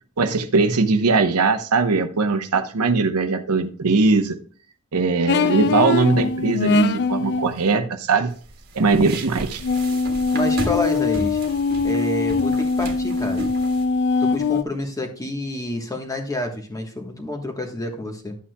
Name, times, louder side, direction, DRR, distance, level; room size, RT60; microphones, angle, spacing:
voice 1, 0.2-4.4 4.9-8.3 8.7-9.6, right 4 dB, 85° right, 6 dB, 0.9 m, -20 dB
sound 1, 5.3-7.5 9.6-14.6, left 4 dB, 50° left, 0.4 m, -22 dB
sound 2, 8.3-13.8, right 1 dB, 45° right, 1.5 m, -34 dB
voice 2, 10.3-11.4 11.8-13.5 14.2-18.4, left 1 dB, 15° left, 3 dB, 1.2 m, -28 dB
11.0 x 8.4 x 2.3 m, 0.42 s
head